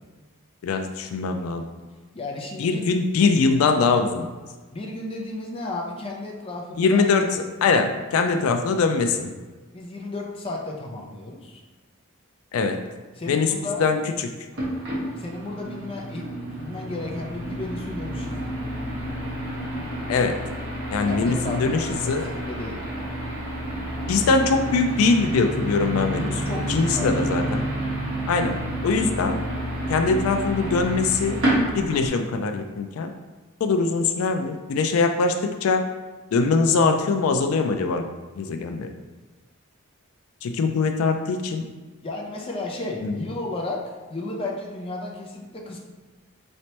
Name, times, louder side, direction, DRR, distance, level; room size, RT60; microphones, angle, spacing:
voice 1, 0.6-1.6 2.6-4.3 6.8-7.3 7.6-9.3 12.5-12.8 13.3-13.5 13.8-14.0 20.1-20.4 20.9-22.2 24.1-26.3 26.7-27.6 28.3-28.6 28.8-29.4 29.9-31.4 31.7-33.1 33.6-35.8 36.3-38.0 38.4-38.9 40.4-41.6 43.0-43.1, left 4 dB, 90° left, 6 dB, 0.3 m, -22 dB
voice 2, 2.1-2.9 4.7-7.1 8.2-8.6 9.7-11.6 13.1-13.9 15.2-18.5 21.1-22.8 26.2-27.2 42.0-45.8, left 2 dB, 25° left, -1 dB, 0.5 m, -33 dB
sound 1, 14.5-32.1, right 1 dB, 60° right, 1.3 m, -29 dB
4.1 x 3.2 x 2.9 m, 1.3 s
head